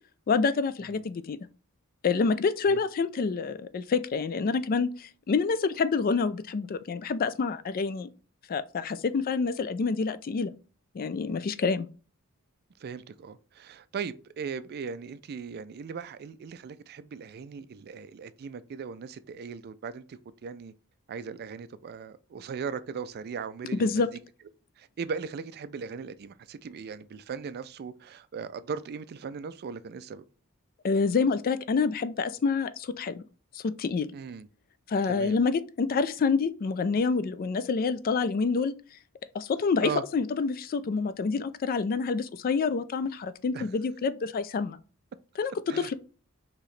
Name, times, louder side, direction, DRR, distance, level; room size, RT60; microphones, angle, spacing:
voice 1, 0.3-1.4 2.0-8.1 8.5-10.5 10.9-11.9 23.7-24.1 30.8-33.2 33.5-34.1 34.9-38.7 39.3-44.8 45.4-45.9, left 4 dB, 40° left, 0.3 m, -27 dB
voice 2, 12.8-20.7 21.1-24.1 24.8-30.2 34.1-34.5 35.1-35.4 39.8-40.0 43.5-43.7 45.7-45.9, right 6 dB, 45° right, 0.3 m, -38 dB
4.7 x 3.0 x 3.1 m
head